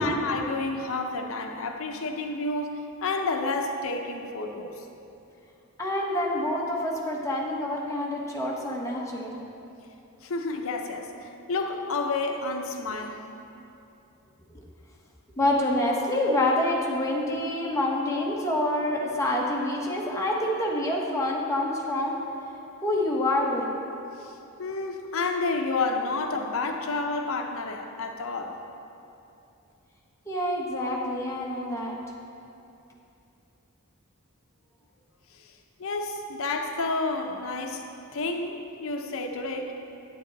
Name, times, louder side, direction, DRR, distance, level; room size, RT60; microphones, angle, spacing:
voice 1, 0.0-4.9 8.3-8.4 10.2-13.2 24.2-24.3 24.6-28.6 35.3-35.5 35.8-39.7, left 3 dB, 65° left, 4 dB, 0.7 m, -30 dB
voice 2, 5.8-9.4 15.4-22.2 22.8-23.7 30.3-32.0, left 1 dB, 15° left, -3 dB, 1.2 m, -27 dB
9.4 x 8.7 x 4.0 m, 2.8 s
head